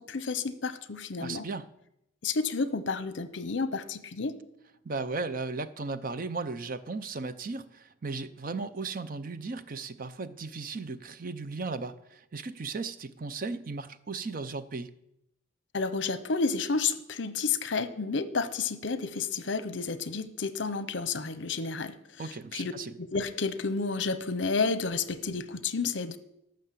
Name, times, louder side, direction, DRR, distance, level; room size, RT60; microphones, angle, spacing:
voice 1, 0.0-1.5 2.2-4.3 15.7-22.0 22.3-22.7 23.0-26.2, left 4 dB, 70° left, 0.8 m, -31 dB
voice 2, 1.2-1.7 4.8-14.9 22.2-22.9, right 3 dB, 45° right, 0.6 m, -36 dB
12.5 x 6.5 x 7.4 m
head